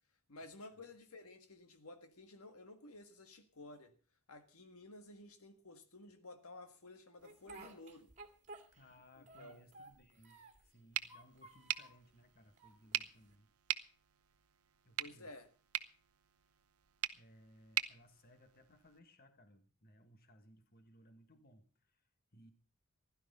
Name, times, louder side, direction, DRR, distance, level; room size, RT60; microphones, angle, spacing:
voice 1, 0.3-3.9 4.3-8.1 9.4-9.6 15.0-15.5, left 2 dB, 75° left, 1.7 m, -54 dB
Speech, 7.2-9.0 9.3-10.7 11.0-12.0 12.6-13.3, right 2 dB, 35° right, 2.2 m, -55 dB
voice 2, 8.7-13.5 14.8-15.3 17.1-22.5, equal, 45° left, 1.7 m, -64 dB
sound 1, 10.9-19.0, right 12 dB, 80° right, 0.8 m, -43 dB
16.0 x 11.5 x 5.4 m
head